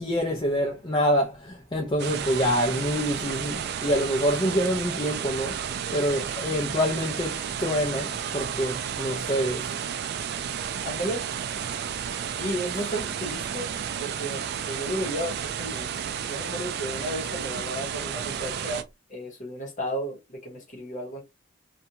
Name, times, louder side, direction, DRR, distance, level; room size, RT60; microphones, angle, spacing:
voice 1, 0.0-5.6 5.9-9.6, equal, 20° left, 0.4 m, -26 dB
sound 1, 2.0-18.8, right 8 dB, 55° right, 0.3 m, -32 dB
voice 2, 10.8-11.3 12.4-16.0 16.2-18.8 19.1-21.2, equal, 40° left, 1.0 m, -33 dB
2.5 x 2.2 x 2.7 m
head